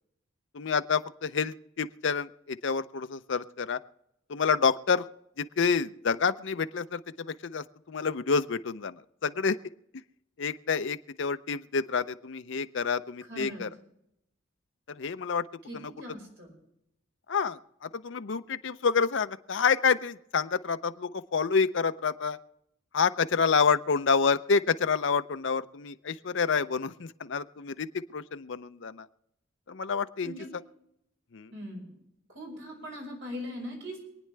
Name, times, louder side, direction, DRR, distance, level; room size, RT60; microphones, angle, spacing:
voice 1, 0.5-3.8 4.3-5.1 5.4-9.6 9.9-10.0 10.4-13.7 14.9-15.5 15.7-15.9 17.3-22.4 22.9-29.1 29.7-30.3 31.3-31.5, left 5 dB, 60° left, 11 dB, 0.5 m, -28 dB
voice 2, 13.3-13.6 15.7-16.5 30.2-30.5 31.5-31.9 32.3-34.0, equal, 60° right, 0 dB, 5.2 m, -40 dB
26.5 x 9.3 x 3.3 m, 0.83 s
head